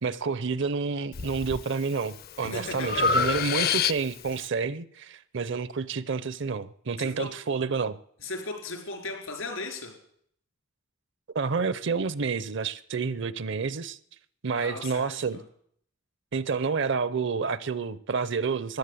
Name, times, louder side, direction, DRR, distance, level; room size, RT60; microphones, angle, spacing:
voice 1, 0.0-8.0 11.3-14.0 14.4-15.4 16.3-18.8, right 5 dB, 60° right, 0.6 m, -29 dB
Breathing, 1.1-1.6 2.1-4.3, left 6 dB, 50° left, 0.5 m, -27 dB
voice 2, 2.4-3.0 7.0-7.3 8.2-9.9 14.6-15.2, left 3 dB, 85° left, 4.5 m, -36 dB
14.5 x 10.5 x 8.3 m
head